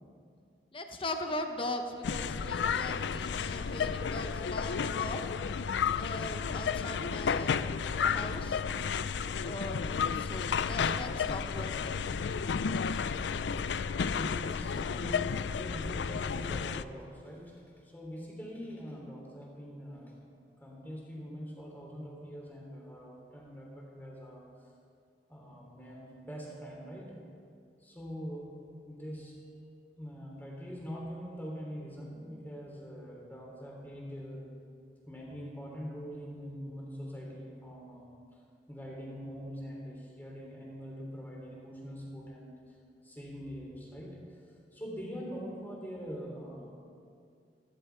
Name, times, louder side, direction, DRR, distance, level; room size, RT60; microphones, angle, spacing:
voice 1, 0.7-5.2 5.9-8.6 9.4-12.0, left 1 dB, 30° left, 5 dB, 1.0 m, -40 dB
sound 1, 2.0-16.8, left 6 dB, 90° left, 0.4 m, -32 dB
voice 2, 12.9-17.5 17.9-20.2 20.6-24.4 25.3-27.1 27.8-28.5 28.8-29.4 30.0-34.5 35.1-38.1 38.7-42.6 43.0-44.2 44.7-46.7, equal, 10° left, -2 dB, 3.1 m, -43 dB
16.0 x 14.5 x 4.6 m, 2.3 s
head